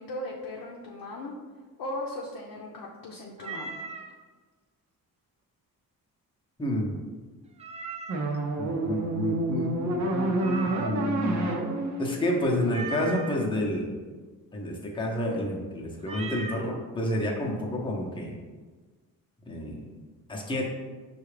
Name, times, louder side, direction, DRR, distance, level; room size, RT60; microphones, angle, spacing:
voice 1, 0.0-1.3 1.8-3.8, left 1 dB, 70° left, -3 dB, 0.7 m, -37 dB
Meow, 3.4-4.1 7.6-8.4 10.4-11.2 12.7-13.4 16.0-16.7, right 4 dB, 20° right, 0.3 m, -38 dB
voice 2, 6.6-6.9 8.6-11.5 12.0-13.9 14.5-18.4 19.5-19.8 20.3-20.6, left 1 dB, 15° left, -1 dB, 0.7 m, -30 dB
sound 1, 8.1-13.2, right 2 dB, 50° right, 0.7 m, -29 dB
5.5 x 2.4 x 3.2 m, 1.4 s
cardioid pair, 105°, 36 cm